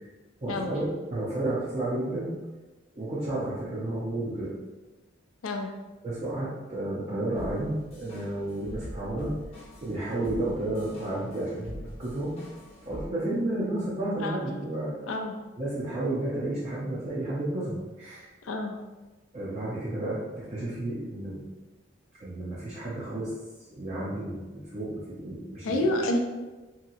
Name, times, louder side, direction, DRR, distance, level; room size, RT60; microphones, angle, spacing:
voice 1, 0.4-2.3 3.0-4.5 6.0-9.3 9.8-12.4 12.8-14.9 15.6-18.3 19.3-21.4 22.2-23.3 23.7-25.7, right 1 dB, 35° right, -8 dB, 0.5 m, -32 dB
sound 1, 7.4-13.1, equal, 30° left, 0.6 m, -44 dB
voice 2, 18.4-18.7 25.6-26.2, left 1 dB, 90° left, 3 dB, 0.4 m, -28 dB
2.8 x 2.8 x 2.6 m, 1.2 s
head